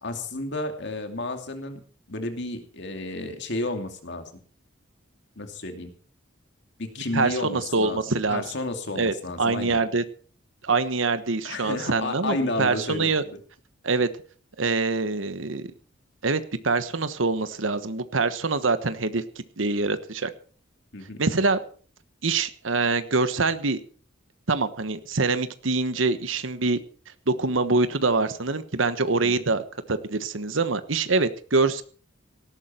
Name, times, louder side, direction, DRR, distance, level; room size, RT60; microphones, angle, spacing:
voice 1, 0.0-1.8 2.1-4.2 5.4-5.9 6.8-8.0 8.3-9.8 11.4-13.4 20.9-21.2 29.2-29.4, left 2 dB, 60° left, 6 dB, 2.7 m, -32 dB
voice 2, 7.1-8.4 8.9-10.0 10.6-13.2 13.8-14.1 14.6-15.7 16.2-19.2 19.6-20.3 21.2-21.6 22.2-23.8 24.5-26.8 27.3-31.8, right 3 dB, 80° right, 11 dB, 1.2 m, -24 dB
18.0 x 13.5 x 4.5 m, 0.42 s
head